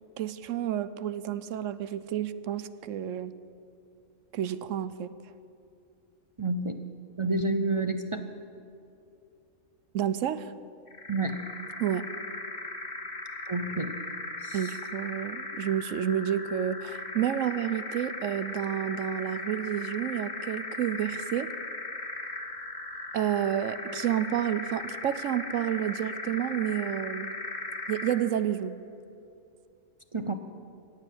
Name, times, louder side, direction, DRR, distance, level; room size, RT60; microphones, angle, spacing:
voice 1, 0.2-3.3 4.3-5.1 9.9-10.5 11.8-12.0 14.5-21.5 23.1-27.3 27.9-28.8, right 10 dB, 75° right, 14 dB, 1.0 m, -30 dB
voice 2, 6.4-6.8 7.2-8.2 11.1-11.4 13.5-13.9 14.4-14.6 30.1-30.3, right 2 dB, 40° right, 7 dB, 0.4 m, -29 dB
sound 1, 10.9-28.3, left 2 dB, 35° left, 1.5 m, -38 dB
17.5 x 7.4 x 9.9 m, 2.6 s
omnidirectional pair, 1.3 m